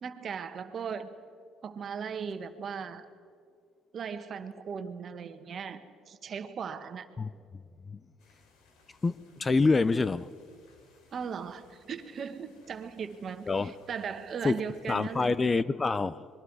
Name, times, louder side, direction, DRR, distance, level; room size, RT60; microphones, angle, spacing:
voice 1, 0.0-1.1 1.6-3.0 3.9-7.1 11.1-15.3, right 6 dB, 45° right, 1.5 m, -38 dB
voice 2, 7.2-7.6 7.9-8.0 9.0-10.3 13.5-13.7 14.4-14.6 14.9-16.3, left 3 dB, 25° left, 0.5 m, -27 dB
sound 1, 8.2-15.3, left 3 dB, 80° left, 3.9 m, -64 dB
26.0 x 22.0 x 4.9 m
cardioid pair, 105°, 0 cm